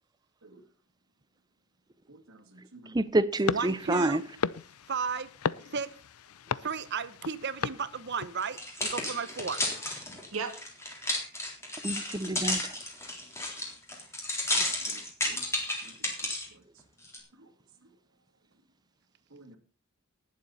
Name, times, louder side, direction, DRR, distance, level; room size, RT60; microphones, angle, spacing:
voice 1, 2.1-3.1 10.3-10.6 10.9-11.0 14.9-15.4 15.8-16.1 16.5-16.6 17.3-17.5 17.8-17.9 19.3-19.6, right 5 dB, 70° right, 2.2 m, -43 dB
voice 2, 2.9-4.2 11.8-12.6, right 1 dB, 20° right, 0.6 m, -27 dB
sound 1, 3.4-8.6, left 6 dB, 85° left, 0.5 m, -36 dB
voice 3, 3.5-4.2 4.9-5.3 5.7-5.9 6.6-9.6 14.5-14.7, right 5 dB, 50° right, 0.9 m, -34 dB
sound 2, 8.4-16.5 17.0-17.2, left 1 dB, 10° left, 3.7 m, -32 dB
19.5 x 7.5 x 4.1 m
head